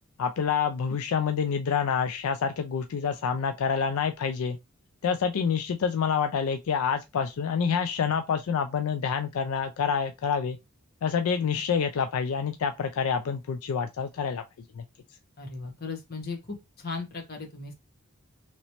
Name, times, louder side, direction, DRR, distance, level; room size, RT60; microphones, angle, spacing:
voice 1, 0.2-4.6 5.0-10.6 11.0-14.4 14.8-14.9, left 6 dB, 80° left, 0.4 m, -27 dB
voice 2, 15.4-17.7, left 4 dB, 45° left, 1.0 m, -37 dB
3.0 x 3.0 x 2.8 m
head